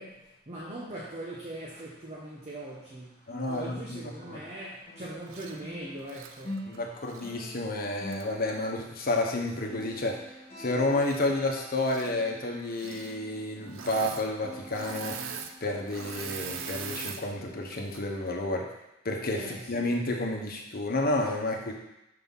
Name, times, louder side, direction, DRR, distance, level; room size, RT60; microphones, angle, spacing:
voice 1, 0.0-3.1 3.5-6.6 19.3-19.9, right 1 dB, 35° right, -6 dB, 0.9 m, -41 dB
sound 1, 0.8-3.0 3.2-16.3 16.7-16.9 17.4-17.5, equal, 30° left, 1.6 m, -47 dB
voice 2, 3.3-4.0 4.3-4.4 6.7-10.2 10.6-15.2 15.6-18.7 19.0-21.7, left 2 dB, 50° left, 1 dB, 1.0 m, -30 dB
Engine / Mechanisms, 5.3-5.6 6.0-7.3 8.1-8.2 10.9-11.5 11.7-12.1 12.7-13.2 13.7-14.3 14.5-17.2 17.7-18.0, right 6 dB, 70° right, 0.5 m, -41 dB
5.8 x 4.0 x 5.5 m, 0.89 s
head